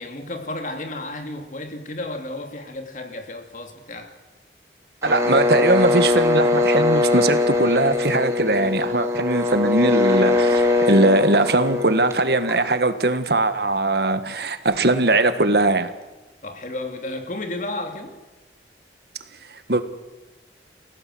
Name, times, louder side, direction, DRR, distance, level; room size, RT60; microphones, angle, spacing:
voice 1, 0.0-4.1 16.4-18.1, left 2 dB, 45° left, 3.0 m, -32 dB
sound 1, 5.0-12.8, left 2 dB, 15° right, 3.3 m, -21 dB
voice 2, 5.0-15.9 19.5-19.8, right 2 dB, 60° right, 1.6 m, -20 dB
30.0 x 17.0 x 7.8 m
head